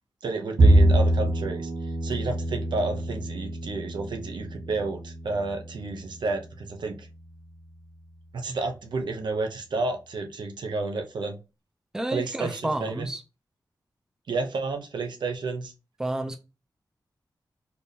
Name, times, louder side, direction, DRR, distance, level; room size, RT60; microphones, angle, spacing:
voice 1, 0.2-1.7 2.0-7.1 8.3-11.4 12.1-13.1 14.3-15.7, right 3 dB, 80° right, 0.8 m, -31 dB
Bowed string instrument, 0.6-6.9, right 1 dB, 60° right, 1.1 m, -25 dB
voice 2, 11.9-13.2 16.0-16.4, right 1 dB, 10° right, 0.4 m, -30 dB
4.4 x 3.3 x 2.7 m
wide cardioid pair, 165°, 8 cm